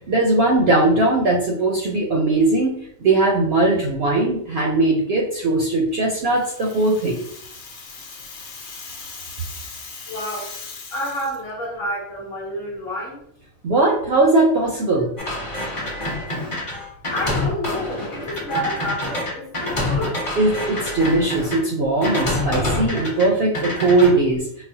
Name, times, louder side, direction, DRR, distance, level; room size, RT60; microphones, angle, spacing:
voice 1, 0.1-7.2 13.6-15.1 20.4-24.4, right 2 dB, 65° right, -1 dB, 0.6 m, -19 dB
Rattle (instrument), 6.2-11.4, left 4 dB, 85° left, 1.1 m, -39 dB
voice 2, 10.1-10.6 10.9-13.2 17.1-20.2, equal, 50° left, -3 dB, 1.0 m, -29 dB
sound 1, 15.2-21.6 22.0-23.3 23.5-24.1, left 1 dB, 30° left, 0.7 m, -26 dB
4.1 x 2.0 x 2.6 m, 0.71 s
omnidirectional pair, 1.4 m